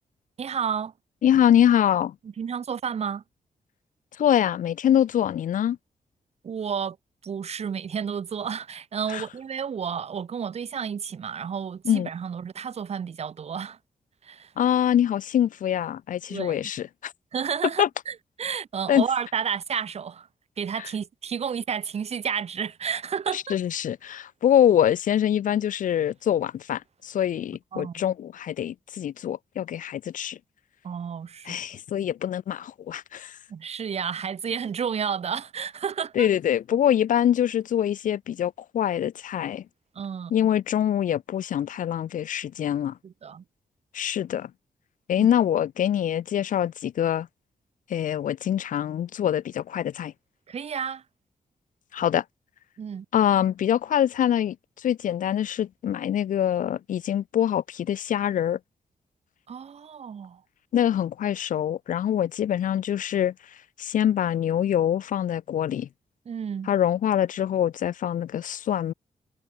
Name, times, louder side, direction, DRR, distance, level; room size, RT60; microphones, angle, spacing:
voice 1, 0.4-0.9 2.2-3.2 6.4-7.0 7.2-13.8 14.2-14.5 16.3-16.6 17.3-20.3 20.6-23.6 27.7-28.1 30.8-31.6 33.5-36.3 39.9-40.3 43.0-43.4 45.2-45.3 50.5-51.0 52.8-53.1 59.5-60.4 66.2-66.7, right 7 dB, 50° right, 0.9 m, -31 dB
voice 2, 1.2-2.1 4.2-5.8 9.1-9.2 11.9-12.1 14.6-17.1 17.8-17.9 18.9-19.0 23.5-30.4 31.5-33.4 36.2-39.6 40.3-43.0 43.9-44.5 45.1-47.3 47.9-50.1 51.9-52.2 53.1-58.6 60.7-63.3 63.8-65.9 66.7-68.9, left 10 dB, 70° left, 0.6 m, -24 dB
wide cardioid pair, 120°, 14 cm